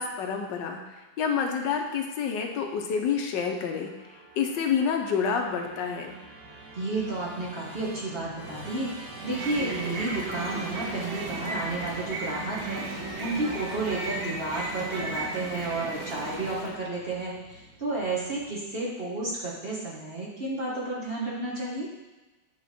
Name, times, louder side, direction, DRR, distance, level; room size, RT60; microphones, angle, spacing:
voice 1, 0.0-3.9 4.4-6.2, left 6 dB, 75° left, 3 dB, 1.4 m, -28 dB
Musical instrument, 3.4-18.7, right 1 dB, 70° right, 2.5 m, -46 dB
voice 2, 6.7-8.9 9.2-12.8 13.2-21.9, right 2 dB, 35° right, -5 dB, 1.2 m, -32 dB
sound 1, 9.1-16.8, right 2 dB, 85° right, 1.8 m, -35 dB
9.3 x 3.6 x 4.2 m, 1.1 s
omnidirectional pair, 2.1 m